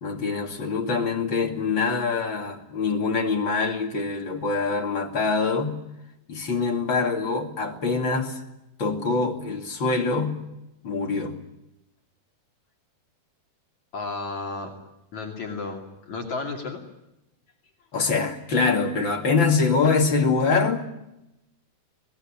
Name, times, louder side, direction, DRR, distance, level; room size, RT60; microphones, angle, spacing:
voice 1, 0.0-5.8 6.3-8.4 8.8-10.4 10.8-11.4 17.9-20.9, left 4 dB, 35° left, 3 dB, 2.6 m, -24 dB
voice 2, 13.9-14.7 15.1-16.8, left 3 dB, 55° left, 1 dB, 3.8 m, -33 dB
26.0 x 20.0 x 8.8 m, 0.89 s
omnidirectional pair, 4.2 m